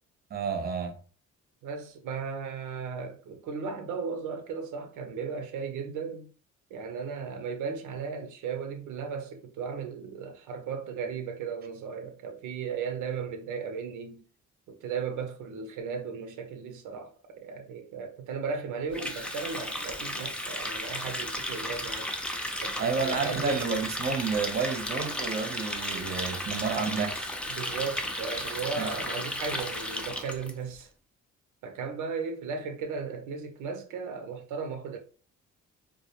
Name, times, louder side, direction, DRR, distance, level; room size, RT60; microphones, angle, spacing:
voice 1, 0.3-0.9 22.8-27.3 28.8-28.9, right 5 dB, 30° right, 0.6 m, -30 dB
voice 2, 1.6-6.3 6.7-14.2 14.7-17.1 17.4-22.1 22.6-23.6 24.9-25.0 27.5-30.9 31.6-35.0, right 5 dB, 85° right, 0.5 m, -36 dB
Water tap faucet, 18.9-30.5, left 1 dB, 5° left, 0.3 m, -34 dB
2.2 x 2.1 x 2.8 m
cardioid pair, 90°, 30 cm